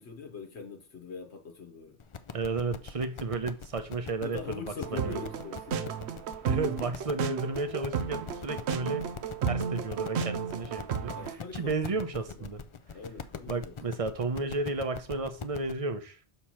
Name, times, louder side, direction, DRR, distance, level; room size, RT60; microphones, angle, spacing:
voice 1, 0.0-2.0 4.2-6.0 11.1-12.0 12.4-12.5 12.9-14.0, left 5 dB, 90° left, 1.4 m, -43 dB
sound 1, 2.0-15.7, left 6 dB, 45° left, 0.4 m, -42 dB
voice 2, 2.3-4.6 4.9-5.2 6.5-9.1 9.5-11.1 11.5-12.6 13.5-16.3, right 3 dB, 35° right, 0.8 m, -33 dB
sound 2, 4.8-11.3, right 7 dB, 80° right, 0.9 m, -33 dB
6.8 x 3.1 x 5.6 m
omnidirectional pair, 1.1 m